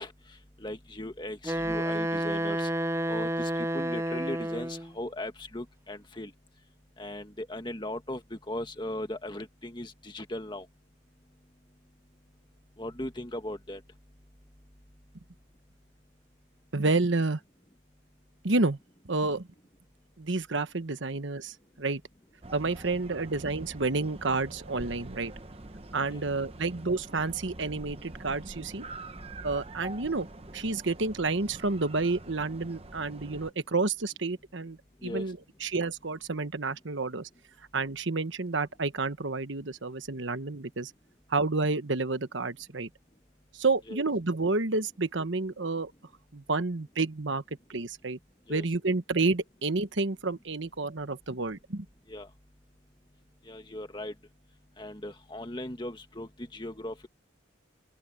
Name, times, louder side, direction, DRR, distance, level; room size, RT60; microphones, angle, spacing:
voice 1, 0.0-6.3 7.0-10.7 12.8-14.0 26.1-26.2 29.1-29.2 35.0-35.3 43.9-44.0 48.5-48.6 52.1-52.3 53.4-54.2 54.8-57.1, left 1 dB, 25° left, 1.8 m, -38 dB
Wind instrument woodwind instrument, 1.4-4.9, right 1 dB, 15° right, 0.5 m, -30 dB
voice 2, 16.7-17.4 18.4-18.8 19.0-19.5 20.2-22.0 22.5-25.3 25.9-28.9 29.4-30.3 30.5-37.3 37.7-40.9 41.3-42.9 43.5-45.9 46.3-47.4 47.7-48.2 48.5-51.8, right 3 dB, 70° right, 1.2 m, -30 dB
sound 1, 22.4-33.5, right 2 dB, 30° right, 1.0 m, -45 dB
open air
head